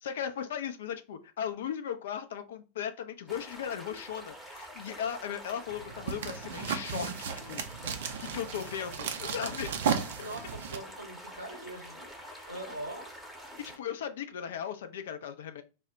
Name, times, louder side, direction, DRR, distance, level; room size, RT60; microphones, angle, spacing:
voice 1, 0.0-7.6 8.2-9.7 12.3-12.5 13.6-15.6, left 8 dB, 60° left, 0.4 m, -37 dB
sound 1, 3.3-13.8, equal, 5° right, 0.8 m, -47 dB
sound 2, 5.7-10.8, right 7 dB, 60° right, 0.4 m, -35 dB
voice 2, 10.2-12.1 12.5-13.2, right 1 dB, 85° right, 0.8 m, -42 dB
2.2 x 2.0 x 3.8 m
figure-of-eight pair, 90°, 0 cm